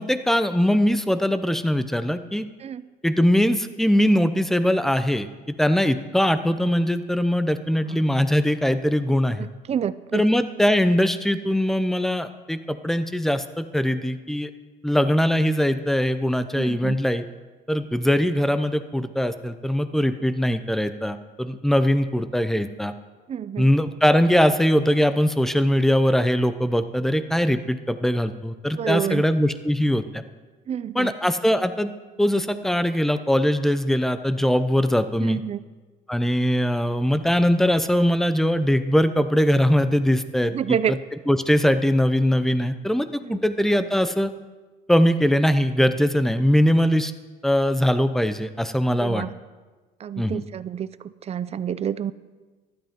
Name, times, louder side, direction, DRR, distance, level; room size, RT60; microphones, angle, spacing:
voice 1, 0.0-2.5 3.0-5.3 5.6-9.5 10.1-14.5 14.8-17.2 17.7-22.9 23.6-30.2 30.9-31.9 32.2-35.4 36.1-40.5 40.9-41.0 41.3-44.3 44.9-47.1 47.4-49.2 50.2-50.4, equal, ahead, 11 dB, 0.7 m, -21 dB
voice 2, 9.4-10.2 16.5-17.0 23.3-23.7 28.8-29.2 30.7-31.1 35.2-35.6 40.5-41.0 43.2-43.4 48.9-49.3 50.0-52.1, right 8 dB, 40° right, 16 dB, 0.5 m, -28 dB
15.0 x 12.0 x 3.7 m, 1.3 s
cardioid pair, 110°, 17 cm